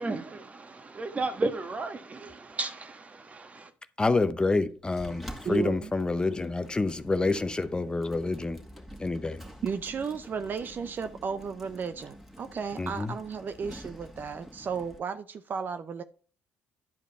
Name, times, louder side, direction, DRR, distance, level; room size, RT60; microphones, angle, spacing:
voice 1, 0.0-3.7, right 2 dB, 30° right, 1.4 m, -34 dB
voice 2, 4.0-8.6 9.0-9.4 12.8-13.1, left 3 dB, 20° left, 0.7 m, -28 dB
Sliding door, 4.9-15.0, equal, 5° right, 2.3 m, -48 dB
voice 3, 5.4-5.9 9.6-16.0, right 6 dB, 45° right, 0.6 m, -34 dB
10.5 x 5.0 x 5.5 m
supercardioid pair, 65°, 4 cm